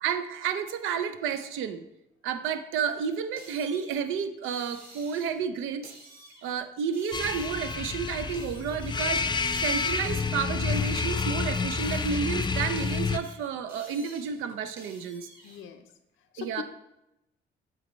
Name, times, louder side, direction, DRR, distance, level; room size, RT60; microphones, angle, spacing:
voice 1, 0.0-1.8 2.2-5.9 6.4-9.2 9.6-15.3 16.4-16.6, right 7 dB, 90° right, 10 dB, 0.5 m, -31 dB
sound 1, 3.4-5.4 5.8-6.6 6.9-9.2 9.4-10.4 10.7-12.4 12.8-15.6, right 1 dB, 50° right, 2.3 m, -50 dB
sound 2, 7.1-13.2, left 4 dB, 25° left, 0.4 m, -29 dB
voice 2, 15.4-15.9 16.3-16.6, left 9 dB, 85° left, 9 dB, 0.6 m, -40 dB
7.7 x 4.0 x 3.1 m, 0.87 s
cardioid pair, 90°, 20 cm